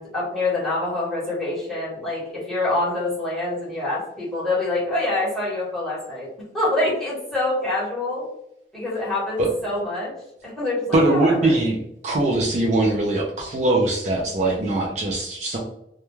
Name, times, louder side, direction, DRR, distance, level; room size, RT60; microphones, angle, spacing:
voice 1, 0.0-6.3 6.5-8.2 8.7-10.1 10.4-11.6, left 2 dB, ahead, -8 dB, 1.1 m, -26 dB
voice 2, 10.9-15.6, right 2 dB, 40° right, -2 dB, 0.4 m, -21 dB
2.2 x 2.2 x 3.0 m, 0.79 s
head